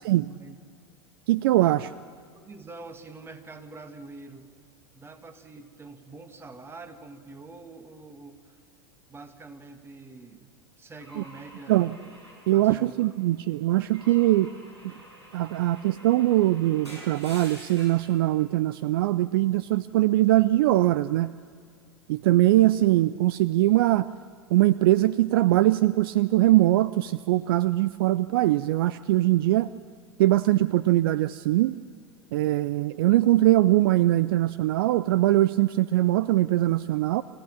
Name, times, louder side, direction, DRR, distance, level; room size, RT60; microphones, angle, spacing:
voice 1, 0.1-0.6 1.6-1.8 2.4-4.5 4.9-8.6 9.1-11.9 12.5-13.1 13.8-13.9, right 3 dB, 15° right, 7 dB, 1.9 m, -45 dB
voice 2, 1.3-1.9 11.2-11.3 11.7-11.9 12.5-14.5 15.3-21.3 22.1-24.1 24.5-29.7 30.2-31.7 32.3-37.2, right 16 dB, 60° right, 17 dB, 0.5 m, -22 dB
Car / Engine / Glass, 11.0-13.2 13.9-18.1, right 1 dB, 90° right, 7.9 m, -48 dB
27.0 x 15.0 x 7.3 m, 2.2 s
figure-of-eight pair, 85°, 14 cm